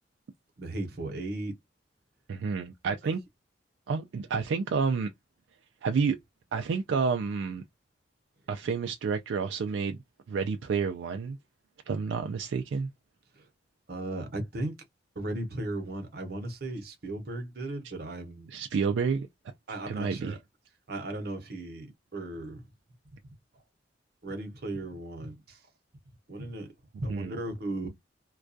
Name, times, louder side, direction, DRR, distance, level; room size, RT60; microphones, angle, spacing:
voice 1, 0.6-1.5 13.4-13.5 13.9-14.7 15.2-18.5 19.7-20.4 20.9-22.6 24.2-25.6 26.3-27.9, right 1 dB, 55° right, 0.8 m, -36 dB
voice 2, 2.3-3.2 3.9-5.1 5.8-6.2 6.5-7.6 8.5-10.0 10.3-11.4 11.9-12.9 18.5-19.3 19.9-20.4 27.1-27.3, right 5 dB, 80° right, 0.3 m, -29 dB
2.3 x 2.2 x 2.5 m
head